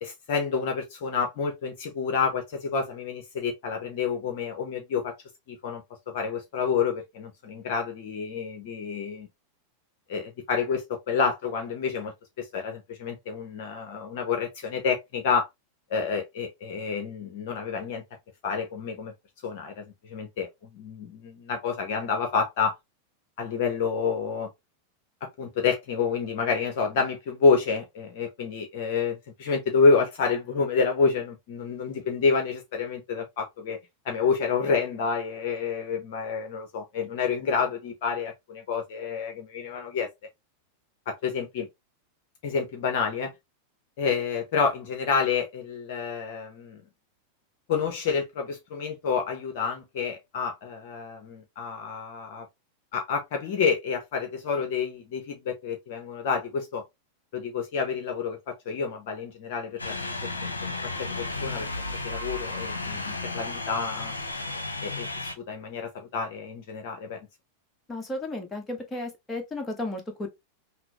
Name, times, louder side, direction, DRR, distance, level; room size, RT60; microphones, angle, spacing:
voice 1, 0.0-5.1 5.5-9.3 10.1-15.5 15.9-18.0 18.4-19.1 19.4-22.7 23.4-24.5 25.2-33.8 34.0-40.1 41.1-41.7 42.4-43.3 44.0-46.8 47.7-52.5 52.9-56.8 57.3-60.0 60.8-61.7 62.0-64.2 64.8-67.2, left 5 dB, 50° left, 0.9 m, -28 dB
sound 1, 59.8-65.4, left 2 dB, 80° left, 0.7 m, -33 dB
voice 2, 67.9-70.3, left 2 dB, 15° left, 1.3 m, -33 dB
5.8 x 2.1 x 2.9 m
figure-of-eight pair, 90°, 0 cm